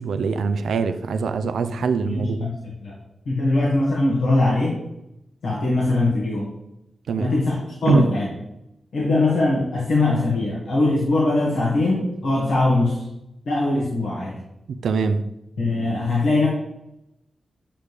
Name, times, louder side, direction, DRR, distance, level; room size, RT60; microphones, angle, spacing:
voice 1, 0.0-2.5 7.1-7.3 7.9-8.1 14.7-15.3, right 4 dB, 90° right, 9 dB, 0.4 m, -23 dB
voice 2, 2.0-2.9 3.3-4.8 5.4-6.5 7.2-8.3 8.9-13.1 13.5-14.4 15.6-16.5, left 2 dB, 90° left, -5 dB, 2.0 m, -21 dB
10.0 x 6.5 x 3.4 m, 0.86 s
cardioid pair, 60°, 0 cm